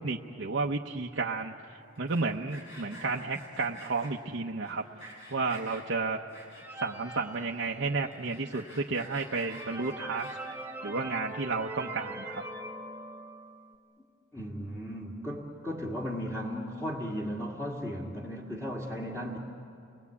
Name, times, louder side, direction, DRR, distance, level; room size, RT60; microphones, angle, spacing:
voice 1, 0.0-1.5 2.0-4.8 5.3-6.2 6.8-10.3 10.8-12.4, right 3 dB, 75° right, -1 dB, 0.9 m, -32 dB
Sawing, 2.0-4.1 4.6-5.8 6.3-6.9 7.3-7.4 7.6-7.7 8.1-10.6, equal, 70° left, 7.4 m, -49 dB
sound 1, 6.6-8.2 8.7-8.8 9.2-13.7, right 1 dB, 10° right, 1.4 m, -41 dB
voice 2, 14.3-19.4, equal, 10° left, -4 dB, 1.9 m, -36 dB
29.5 x 21.0 x 8.4 m, 2.5 s
head